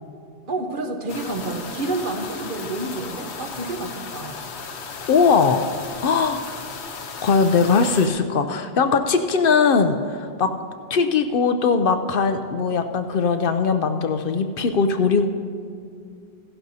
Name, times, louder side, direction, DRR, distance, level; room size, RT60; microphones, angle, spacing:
voice 1, 0.5-4.4, right 2 dB, 55° right, 4 dB, 1.1 m, -29 dB
sound 1, 1.1-8.1, left 5 dB, 85° left, 1.1 m, -35 dB
voice 2, 5.1-5.7 6.0-6.4 7.2-10.5 10.9-15.3, left 5 dB, 65° left, 8 dB, 0.7 m, -20 dB
16.0 x 11.5 x 2.7 m, 2.3 s
omnidirectional pair, 1.1 m